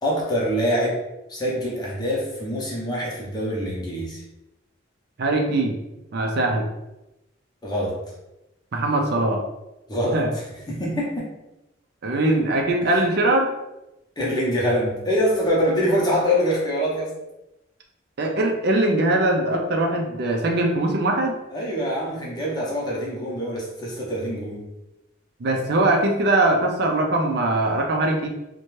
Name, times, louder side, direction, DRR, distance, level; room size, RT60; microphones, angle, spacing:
voice 1, 0.0-1.0 1.3-4.2 7.6-8.0 9.9-11.3 12.8-12.9 14.2-17.2 21.5-24.6, equal, 20° left, -4 dB, 0.7 m, -24 dB
voice 2, 5.2-5.8 6.1-6.7 8.7-9.4 10.1-10.3 12.0-13.5 18.2-21.4 25.4-28.3, right 2 dB, 60° right, 2 dB, 0.4 m, -21 dB
2.7 x 2.2 x 3.0 m, 0.95 s
head